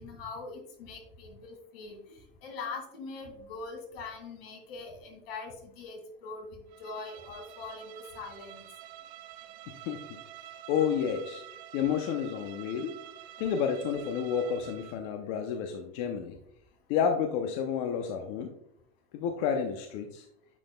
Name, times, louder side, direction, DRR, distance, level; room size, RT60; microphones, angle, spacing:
voice 1, 0.0-8.6, left 4 dB, 85° left, 3 dB, 2.2 m, -42 dB
Bowed string instrument, 6.7-15.1, right 13 dB, 60° right, 0.5 m, -48 dB
voice 2, 9.7-10.2 10.7-11.4 11.7-13.0 13.4-16.4 16.9-18.5 19.1-20.3, left 7 dB, 60° left, 5 dB, 0.7 m, -30 dB
9.3 x 5.4 x 2.2 m, 0.79 s
supercardioid pair, 145°, 29 cm